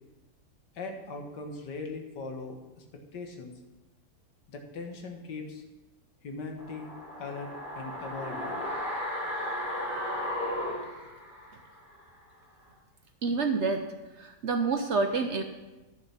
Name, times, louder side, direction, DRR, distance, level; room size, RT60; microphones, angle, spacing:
voice 1, 0.7-2.8 3.1-3.5 4.5-5.6 6.2-6.9 7.2-8.6, left 3 dB, 90° left, 3 dB, 2.0 m, -40 dB
sound 1, 6.6-11.7 12.0-12.1, left 1 dB, 35° left, 3.1 m, -35 dB
voice 2, 13.2-15.4, right 4 dB, 60° right, 6 dB, 0.8 m, -28 dB
11.0 x 7.0 x 5.6 m, 1.1 s
omnidirectional pair, 1.8 m